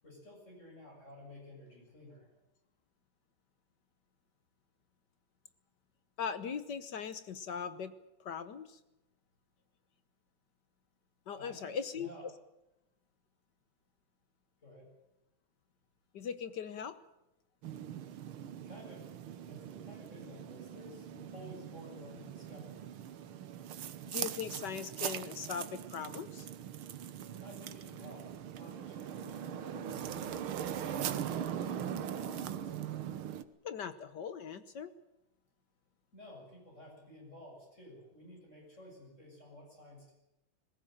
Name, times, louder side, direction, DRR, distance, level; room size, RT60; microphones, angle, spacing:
voice 1, 0.0-2.3 11.3-12.2 14.6-14.9 18.6-19.0 19.5-22.8 27.4-30.4 30.7-32.7 36.1-40.1, left 1 dB, 35° left, -1 dB, 7.6 m, -53 dB
voice 2, 6.2-7.9 8.2-8.8 11.3-12.1 16.1-17.0 24.0-26.5 33.6-34.9, left 7 dB, 60° left, 13 dB, 1.6 m, -40 dB
sound 1, 17.6-33.4, right 10 dB, 85° right, 1.9 m, -41 dB
20.5 x 17.5 x 9.0 m, 0.91 s
omnidirectional pair, 2.3 m